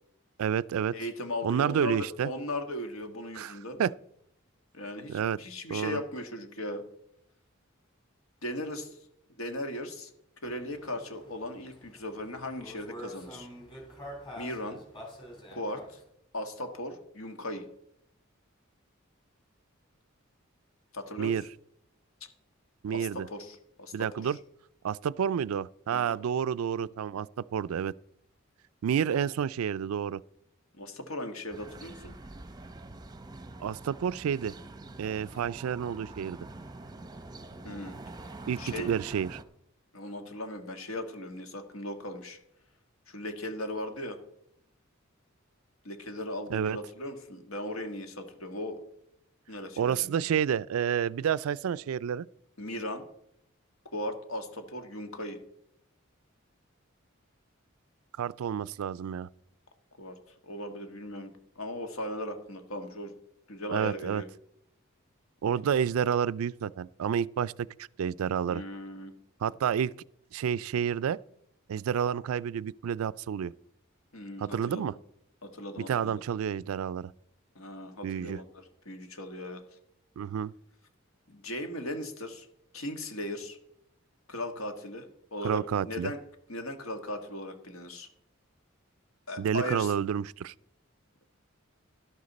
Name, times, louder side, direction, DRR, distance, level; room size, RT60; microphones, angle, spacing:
voice 1, 0.4-0.9 1.4-2.3 3.4-3.9 5.1-5.4 5.7-6.0 21.2-21.4 22.8-23.3 23.9-24.4 24.8-27.9 28.8-30.2 33.6-34.5 35.0-36.4 38.5-39.4 46.5-46.8 49.8-52.3 58.2-59.3 63.7-64.2 65.4-68.6 69.4-69.9 70.3-71.2 71.7-73.5 74.4-74.9 75.8-77.1 78.0-78.4 80.2-80.5 85.4-86.1 89.4-90.5, right 8 dB, 85° right, 0.3 m, -29 dB
voice 2, 0.9-3.8 4.7-6.8 8.4-9.0 9.4-10.1 10.4-13.5 14.4-14.8 15.5-16.0 16.3-17.6 20.9-21.3 22.9-24.3 25.9-26.2 30.7-32.2 37.6-37.9 38.6-38.9 39.9-42.4 43.1-44.2 45.8-48.8 49.5-50.2 52.6-53.0 53.9-55.4 60.0-60.2 60.4-63.1 63.5-64.3 68.5-69.1 74.1-74.9 75.4-76.2 77.5-79.6 81.3-82.5 82.7-83.6 84.3-85.6 85.8-86.2 86.5-88.1 89.3-89.9, left 1 dB, 80° left, 1.6 m, -38 dB
sound 1, 10.4-16.0, equal, 25° left, 3.7 m, -47 dB
sound 2, 31.5-39.4, right 2 dB, 20° right, 0.7 m, -45 dB
12.0 x 11.5 x 4.1 m
head